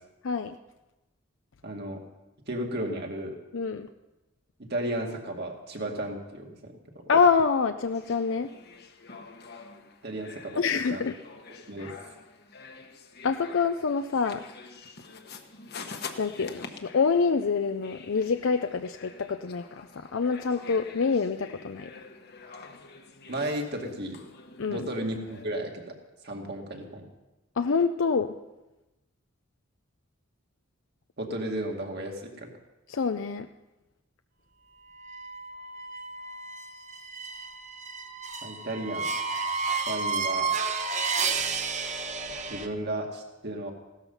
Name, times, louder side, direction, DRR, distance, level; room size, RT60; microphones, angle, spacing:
voice 1, 0.2-0.6 3.5-3.9 7.1-8.5 10.6-11.1 11.8-11.9 13.2-14.4 16.2-21.9 24.6-24.9 27.6-28.3 32.9-33.5, left 5 dB, 70° left, 8 dB, 0.5 m, -26 dB
voice 2, 1.6-2.0 2.5-3.3 4.6-7.0 10.0-11.0 11.7-11.9 23.3-24.2 24.7-25.9 26.2-27.0 31.2-32.5 38.4-39.1 39.9-40.6 42.5-43.7, right 1 dB, 55° right, 2 dB, 2.3 m, -34 dB
sound 1, 7.8-25.5, left 4 dB, 55° left, 1.2 m, -47 dB
sound 2, 35.0-42.7, right 4 dB, 35° right, 1.1 m, -31 dB
16.5 x 13.0 x 5.6 m, 1.0 s
head